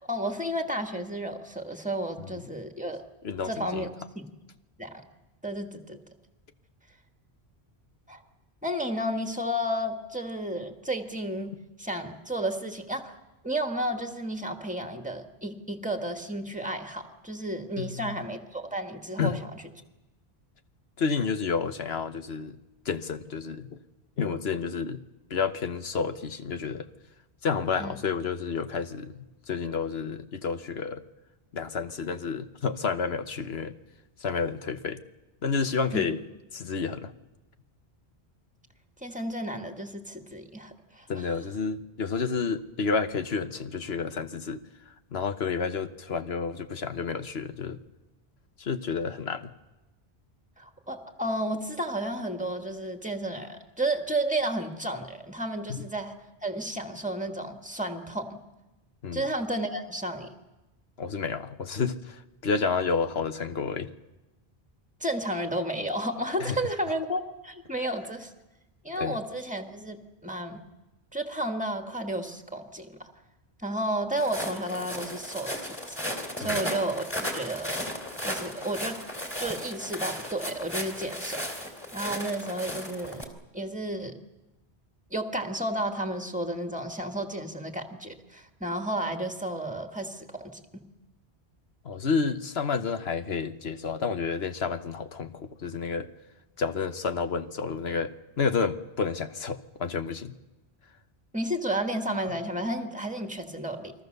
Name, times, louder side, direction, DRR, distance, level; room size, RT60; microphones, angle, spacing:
voice 1, 0.0-3.0 3.4-3.9 4.2-4.3 4.8-4.9 5.4-6.0 8.1-8.2 8.6-13.2 13.4-19.6 27.8-28.0 35.9-36.0 39.0-41.4 50.6-56.1 56.4-58.4 59.1-60.3 65.0-68.3 68.8-70.6 71.1-73.0 73.6-76.0 76.4-77.9 78.2-79.0 79.4-83.3 83.5-84.2 85.1-90.8 101.3-103.9, right 1 dB, 5° right, 5 dB, 2.0 m, -32 dB
voice 2, 3.2-3.9 17.8-18.2 19.2-19.4 21.0-22.6 22.8-23.8 24.2-25.0 25.3-26.9 27.4-31.0 31.5-33.7 34.2-35.0 35.4-36.2 36.5-37.1 41.1-44.6 45.1-47.8 48.6-49.5 55.7-55.9 59.0-59.3 61.0-63.9 66.4-66.6 69.0-69.2 76.4-76.6 91.8-96.1 96.6-100.3, left 5 dB, 70° left, 10 dB, 1.4 m, -30 dB
Walk footsteps, 74.2-83.2, left 1 dB, 10° left, 3.1 m, -35 dB
29.0 x 22.0 x 6.8 m, 1.0 s
omnidirectional pair, 1.1 m